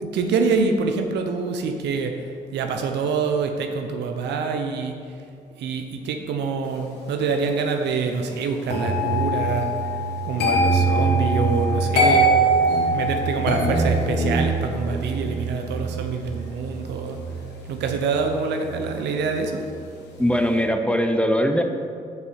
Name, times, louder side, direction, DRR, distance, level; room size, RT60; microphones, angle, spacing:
voice 1, 0.0-2.1 2.5-5.0 5.6-9.7 10.2-12.3 12.8-17.2 17.7-19.7, right 5 dB, 75° right, 5 dB, 0.7 m, -25 dB
sound 1, 8.7-19.7 19.9-20.3, right 2 dB, 75° left, 1.3 m, -23 dB
voice 2, 12.7-13.2 20.2-21.6, equal, 5° left, 5 dB, 0.8 m, -22 dB
6.2 x 5.2 x 5.6 m, 2.3 s
hypercardioid pair, 50°, 18 cm